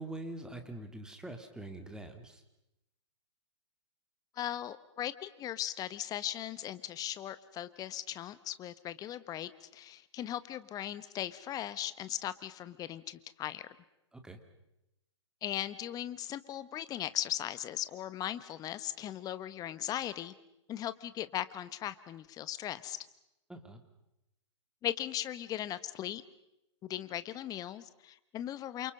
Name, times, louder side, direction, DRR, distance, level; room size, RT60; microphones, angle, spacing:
voice 1, 0.0-2.4 14.1-14.4 23.5-23.8, right 2 dB, 5° right, 6 dB, 2.8 m, -44 dB
voice 2, 4.3-13.7 15.4-20.3 20.7-23.0 24.8-26.2 26.8-28.9, left 12 dB, 25° left, 14 dB, 1.4 m, -38 dB
29.0 x 27.5 x 5.5 m, 0.88 s
figure-of-eight pair, 115°, 15 cm